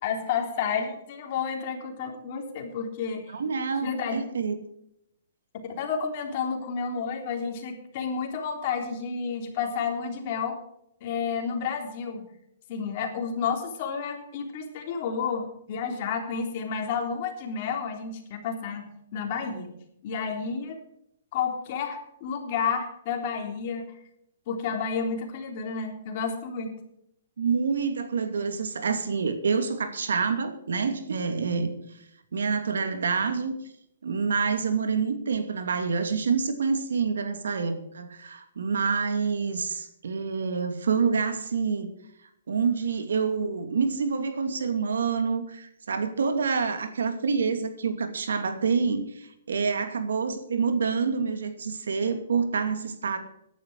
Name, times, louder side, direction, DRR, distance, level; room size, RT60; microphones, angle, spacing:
voice 1, 0.0-3.2 3.8-4.2 5.8-10.6 11.0-12.3 12.7-18.8 19.1-19.7 20.0-20.8 21.3-23.9 24.5-26.7, left 6 dB, 40° left, 3 dB, 3.5 m, -31 dB
voice 2, 3.3-4.6 27.4-32.0 32.3-33.6 34.0-41.9 42.5-53.2, right 5 dB, 85° right, 8 dB, 2.5 m, -27 dB
14.5 x 11.0 x 4.8 m, 0.76 s
hypercardioid pair, 160°, 0 cm